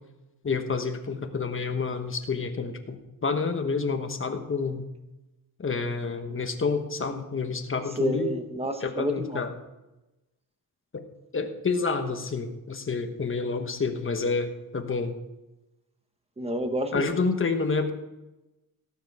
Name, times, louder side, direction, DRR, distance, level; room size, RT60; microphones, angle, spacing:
voice 1, 0.4-4.9 5.6-8.3 8.8-9.5 10.9-11.0 11.3-15.1 16.9-17.9, left 4 dB, 35° left, 6 dB, 1.2 m, -29 dB
voice 2, 8.0-9.4 16.4-17.1, right 1 dB, 15° right, 7 dB, 1.1 m, -30 dB
17.5 x 7.8 x 4.8 m, 1.0 s
wide cardioid pair, 160°, 37 cm